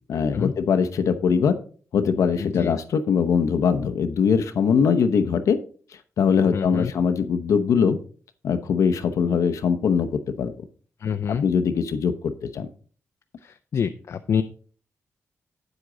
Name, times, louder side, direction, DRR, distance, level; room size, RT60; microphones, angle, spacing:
voice 1, 0.1-1.6 1.9-5.6 6.2-8.0 8.4-10.1 10.4-10.5 11.4-12.7, left 6 dB, 80° left, 9 dB, 0.8 m, -21 dB
voice 2, 2.4-2.7 6.5-6.9 11.0-11.4 13.4-14.4, left 7 dB, 60° left, 7 dB, 0.5 m, -27 dB
8.5 x 8.0 x 3.9 m, 0.43 s
cardioid pair, 100°, 5 cm